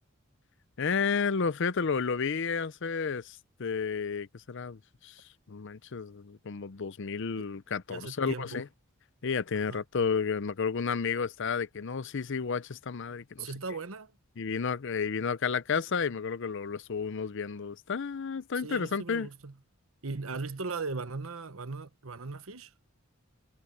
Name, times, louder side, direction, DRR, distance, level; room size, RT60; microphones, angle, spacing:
voice 1, 0.8-8.7 9.2-13.5 14.4-19.3, left 5 dB, 60° left, 0.6 m, -32 dB
voice 2, 7.9-8.6 9.7-9.8 13.4-14.1 18.6-19.5 20.0-22.7, right 4 dB, 75° right, 1.2 m, -38 dB
head